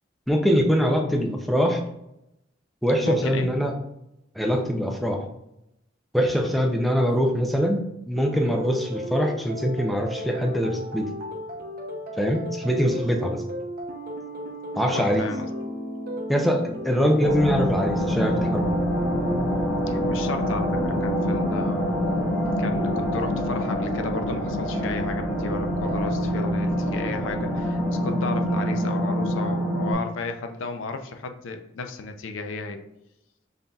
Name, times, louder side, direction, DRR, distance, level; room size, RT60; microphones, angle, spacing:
voice 1, 0.3-1.8 2.8-3.7 4.4-5.2 6.1-11.1 12.2-13.4 14.8-15.2 16.3-18.7, equal, ahead, 2 dB, 0.5 m, -23 dB
voice 2, 3.0-3.5 14.9-15.5 19.9-22.0 22.6-32.8, left 3 dB, 80° left, 7 dB, 0.5 m, -33 dB
sound 1, 8.2-26.5, equal, 50° right, 0.7 m, -35 dB
sound 2, 17.2-29.9, equal, 40° left, 1.5 m, -26 dB
5.4 x 3.8 x 2.3 m, 0.84 s
head